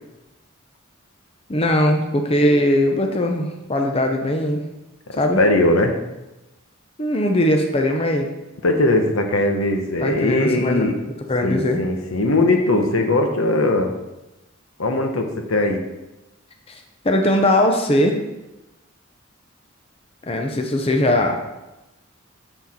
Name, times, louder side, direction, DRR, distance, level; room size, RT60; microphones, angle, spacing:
voice 1, 1.5-4.6 5.2-5.4 7.0-8.3 10.0-11.0 11.3-11.8 17.0-18.2 20.3-21.4, left 1 dB, 30° left, 4 dB, 0.6 m, -20 dB
voice 2, 5.4-5.9 8.6-10.9 11.4-13.9 14.8-15.8, left 2 dB, 80° left, 4 dB, 1.0 m, -19 dB
7.0 x 6.1 x 4.3 m, 1.0 s
head